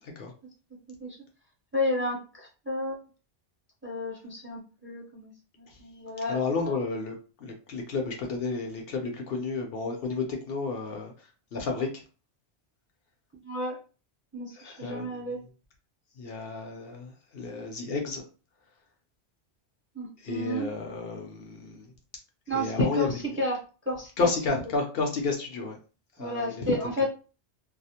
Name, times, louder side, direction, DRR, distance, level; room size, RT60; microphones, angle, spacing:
voice 1, 0.0-0.3 5.7-5.8 6.3-12.0 14.5-15.3 16.2-18.2 20.2-21.9 22.5-23.3 24.2-25.8 26.2-27.1, left 3 dB, 65° left, 0.7 m, -31 dB
voice 2, 1.7-3.0 3.8-6.7 13.4-13.8 14.3-15.4 19.9-20.7 22.5-23.1 23.4-23.6 23.9-24.3 26.2-27.0, left 1 dB, 15° right, 0.4 m, -32 dB
2.3 x 2.0 x 2.7 m
omnidirectional pair, 1.1 m